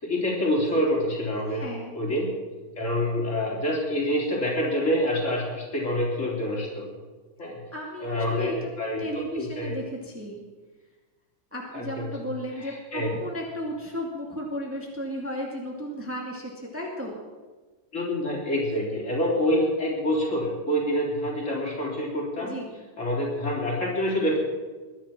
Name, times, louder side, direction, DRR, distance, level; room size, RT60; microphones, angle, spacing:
voice 1, 0.0-1.6 1.9-2.3 2.8-6.9 7.4-7.6 8.0-9.0 9.4-9.7 11.7-12.1 12.6-13.1 17.9-22.5 23.0-24.4, equal, 45° left, -3 dB, 4.2 m, -26 dB
voice 2, 1.5-2.0 7.7-8.7 9.0-10.5 11.5-17.2 22.3-22.7, equal, 5° right, -1 dB, 2.2 m, -34 dB
21.5 x 10.5 x 6.1 m, 1.3 s
omnidirectional pair, 1.9 m